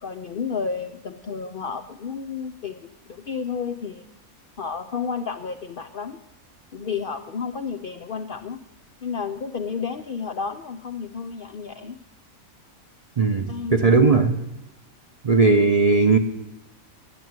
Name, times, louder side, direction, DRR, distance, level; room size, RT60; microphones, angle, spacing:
voice 1, 0.0-4.0 4.6-6.2 6.7-8.6 9.0-12.0 13.5-14.1, left 6 dB, 70° left, 0.5 m, -31 dB
voice 2, 13.2-14.4 15.2-16.2, right 4 dB, 70° right, 0.3 m, -18 dB
10.0 x 7.7 x 9.2 m
omnidirectional pair, 1.5 m